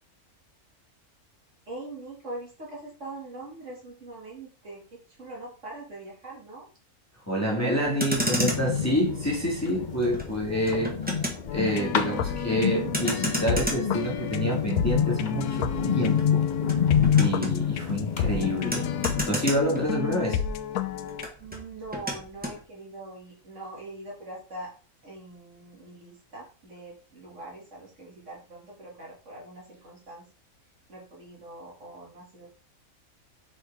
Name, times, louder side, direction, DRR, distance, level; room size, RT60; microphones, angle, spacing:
voice 1, 1.7-6.7 21.4-24.7 25.0-30.3 30.9-32.5, right 2 dB, 55° right, 2.5 m, -42 dB
voice 2, 7.3-10.9 11.5-16.5 17.2-18.9 19.3-20.4, equal, 10° left, 1.9 m, -27 dB
Motor vehicle (road), 7.9-20.4 20.7-22.6, equal, 5° right, 1.5 m, -34 dB
sound 1, 8.2-19.3, left 7 dB, 40° left, 0.8 m, -28 dB
sound 2, 11.5-21.3, left 8 dB, 85° left, 1.1 m, -31 dB
6.3 x 5.5 x 3.5 m
omnidirectional pair, 1.6 m